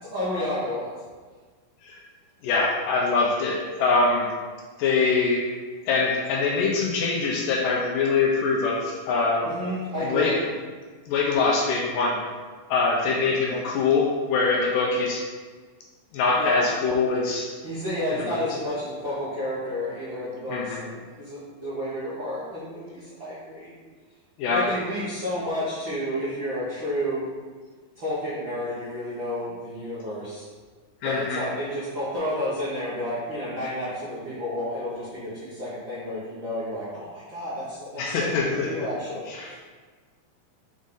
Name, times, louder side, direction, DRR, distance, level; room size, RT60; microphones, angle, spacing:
voice 1, 0.0-1.0 9.4-10.4 13.4-13.6 16.4-16.7 17.6-23.7 24.5-27.3 27.9-30.4 31.0-39.6, left 1 dB, 60° right, -11 dB, 1.3 m, -31 dB
voice 2, 2.4-4.3 4.8-5.5 5.9-9.5 10.0-10.4 11.1-12.2 12.7-15.3 16.1-17.5 18.1-18.4 20.5-20.8 24.4-24.7 31.0-31.5 38.0-38.9 39.3-39.6, left 4 dB, 80° left, -1 dB, 2.1 m, -23 dB
6.1 x 4.0 x 3.8 m, 1.4 s
omnidirectional pair, 4.2 m